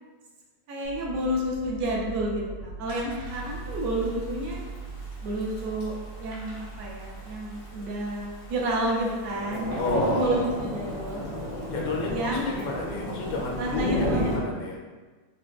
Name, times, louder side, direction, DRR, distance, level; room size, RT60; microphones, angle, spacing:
voice 1, 0.7-4.6 5.2-11.3 12.1-12.6 13.6-14.4, right 1 dB, 70° right, -2 dB, 1.1 m, -30 dB
sound 1, 0.8-12.8, right 4 dB, 90° right, 1.6 m, -42 dB
sound 2, 2.9-3.6 4.0-4.1 4.4-4.5 5.1-5.5 6.3-7.0 8.3-8.7 9.7-10.5 11.1-11.2, right 1 dB, 40° right, 0.8 m, -49 dB
Thunder / Rain, 3.2-14.4, equal, 65° left, 0.9 m, -33 dB
voice 2, 9.8-10.4 11.7-14.8, left 3 dB, 80° left, -2 dB, 1.4 m, -31 dB
4.8 x 2.2 x 2.3 m, 1.4 s
omnidirectional pair, 2.3 m